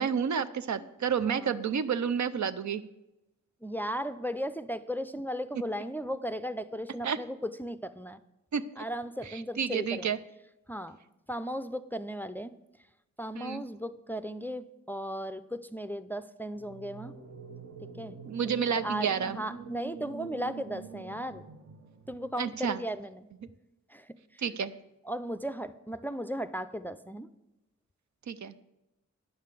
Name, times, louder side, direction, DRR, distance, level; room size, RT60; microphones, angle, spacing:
voice 1, 0.0-2.9 7.0-7.2 8.5-8.6 9.6-10.2 13.4-13.6 18.2-19.4 22.4-22.8 24.4-24.7 28.3-28.5, right 7 dB, 70° right, 12 dB, 0.5 m, -30 dB
voice 2, 1.2-1.6 3.6-8.2 8.8-10.1 10.7-11.0 11.3-12.5 13.2-17.1 17.9-18.2 18.5-18.6 18.8-21.4 22.1-23.3 23.9-24.4 25.0-27.3, equal, 5° left, 11 dB, 0.4 m, -36 dB
sound 1, 16.5-22.7, right 5 dB, 55° right, 1.1 m, -46 dB
9.6 x 5.6 x 6.7 m, 0.93 s
cardioid pair, 60°, 30 cm